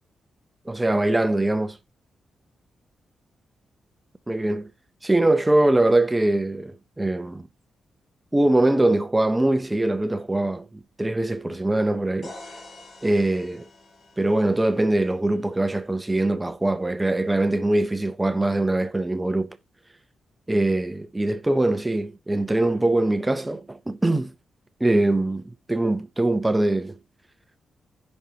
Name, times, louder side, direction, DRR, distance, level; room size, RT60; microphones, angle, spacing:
voice 1, 0.7-1.8 4.3-4.7 5.0-7.5 8.3-10.7 11.0-12.3 13.0-13.7 14.2-19.5 20.5-24.3 24.8-25.4 25.7-27.0, right 1 dB, 10° right, 0.6 m, -22 dB
sound 1, 12.2-16.1, left 2 dB, 40° left, 2.2 m, -47 dB
16.0 x 5.3 x 2.8 m
wide cardioid pair, 165°, 0 cm